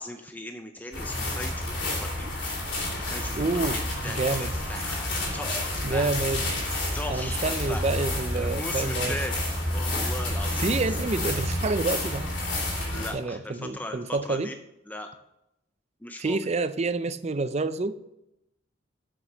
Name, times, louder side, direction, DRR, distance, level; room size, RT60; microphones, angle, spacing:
voice 1, 0.0-2.5 3.1-6.2 6.9-7.9 8.3-9.3 9.7-10.9 12.8-14.6 14.9-15.1 16.0-16.4, left 1 dB, 10° left, 5 dB, 0.5 m, -38 dB
sound 1, 0.9-13.1, left 1 dB, 80° left, 3.3 m, -29 dB
voice 2, 3.4-3.8 4.1-4.5 5.8-6.5 7.1-9.2 10.6-12.3 12.9-14.5 16.2-18.0, right 3 dB, 35° right, 13 dB, 0.5 m, -28 dB
7.8 x 6.1 x 6.6 m, 0.85 s
head